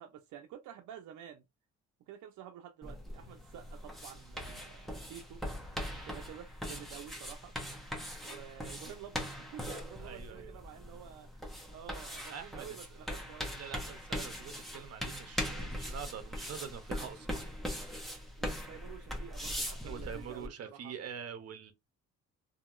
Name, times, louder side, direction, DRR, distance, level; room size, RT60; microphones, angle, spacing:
voice 1, 0.0-1.4 2.1-5.4 6.0-7.5 8.2-11.3 11.7-13.6 18.4-20.9, right 10 dB, 80° right, 0.5 m, -50 dB
sound 1, 2.8-20.5, equal, ahead, 1.0 m, -41 dB
voice 2, 5.8-6.2 10.0-10.6 12.3-17.5 19.8-21.7, right 7 dB, 55° right, 0.8 m, -45 dB
2.8 x 2.7 x 2.4 m
cardioid pair, 90°, 30 cm